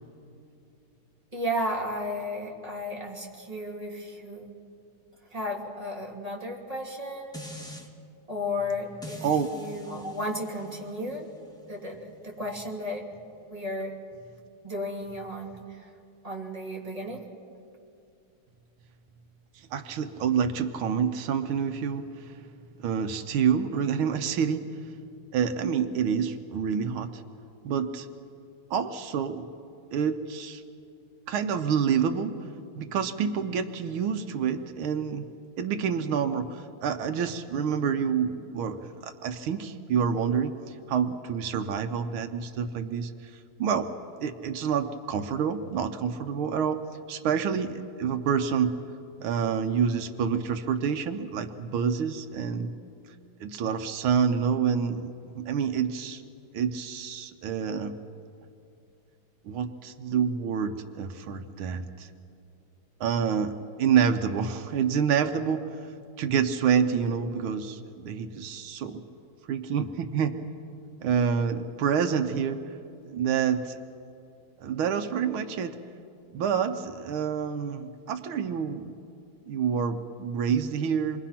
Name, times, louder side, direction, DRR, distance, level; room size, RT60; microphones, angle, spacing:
voice 1, 1.3-4.5 5.3-7.3 8.3-9.3 9.5-11.3 11.7-13.1 13.5-14.0 14.6-15.9 16.2-17.3, left 1 dB, 15° right, -2 dB, 2.9 m, -34 dB
sound 1, 7.3-7.9 9.0-14.2 14.6-14.7, left 1 dB, ahead, 1.6 m, -46 dB
voice 2, 19.7-22.4 22.8-24.6 25.3-27.2 27.6-28.1 28.7-29.5 29.9-30.6 31.3-32.3 32.8-35.3 35.6-40.6 40.9-43.3 43.6-43.9 44.2-46.8 47.1-48.8 49.2-52.7 53.4-56.2 56.5-58.0 59.5-62.1 63.0-63.5 63.8-65.7 66.2-69.0 69.5-70.5 71.0-72.6 73.1-73.8 74.6-75.8 76.3-78.9 79.5-81.2, right 7 dB, 85° right, 8 dB, 1.8 m, -27 dB
27.0 x 22.5 x 5.8 m, 2.5 s
omnidirectional pair, 2.2 m